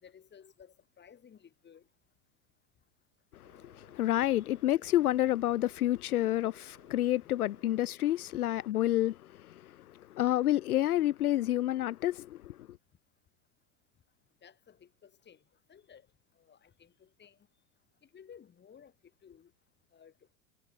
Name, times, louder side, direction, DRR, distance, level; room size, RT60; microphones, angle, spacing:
voice 1, 0.0-1.8 14.4-15.4 15.7-16.0 16.4-17.4 18.0-18.9 19.2-19.5 19.9-20.4, left 8 dB, 20° left, 5.0 m, -56 dB
voice 2, 3.3-12.8, left 13 dB, 70° left, 0.9 m, -29 dB
sound 1, 3.4-3.9 4.4-4.9 5.4-5.9 6.4-6.9 7.4-7.9, right 28 dB, 45° right, 4.5 m, -65 dB
figure-of-eight pair, 95°, 46 cm